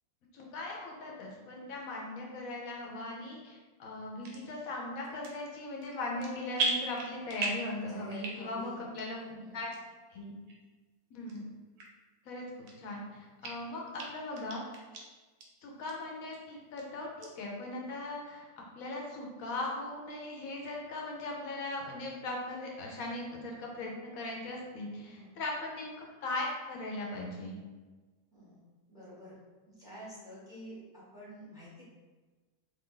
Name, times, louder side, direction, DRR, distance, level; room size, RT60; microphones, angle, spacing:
voice 1, 0.3-9.2 9.5-9.7 10.1-10.4 11.1-11.5 12.3-14.6 15.6-18.5 18.8-27.6, left 2 dB, 65° left, -1 dB, 0.9 m, -39 dB
sound 1, 4.2-4.4 5.0-5.5 5.8-6.3 6.5-7.7 8.1-8.6 9.0-9.1 9.7-9.8 10.5-10.6 11.3-11.4 11.8-11.9 12.4-13.0 13.4-13.5 14.0-14.1 14.3-15.0 15.4-15.5 15.9-16.0 16.3-16.8 17.2-17.3, right 3 dB, 70° right, 1.1 m, -35 dB
voice 2, 7.9-8.8 9.2-9.6 25.0-25.3 28.3-28.6 28.9-29.4 29.7-31.8, right 1 dB, 5° right, -8 dB, 0.7 m, -48 dB
3.1 x 2.5 x 3.7 m, 1.3 s
omnidirectional pair, 2.0 m